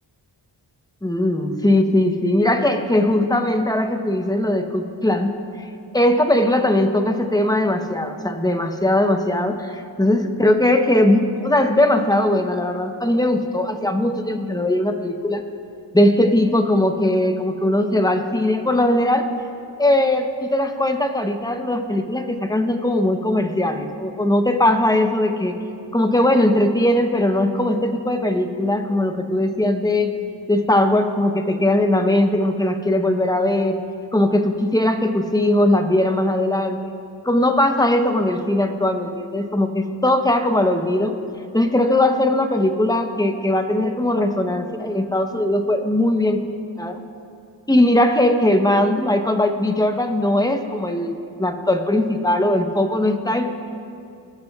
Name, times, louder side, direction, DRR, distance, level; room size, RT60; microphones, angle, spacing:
voice 1, 1.0-5.3 5.9-15.4 15.9-19.3 19.8-25.6 25.9-30.1 30.5-33.8 34.1-36.9 37.2-41.2 41.5-46.5 46.8-47.0 47.7-53.5, left 1 dB, 10° left, 6 dB, 0.8 m, -19 dB
19.5 x 12.5 x 2.3 m, 2.5 s
wide cardioid pair, 75°, 46 cm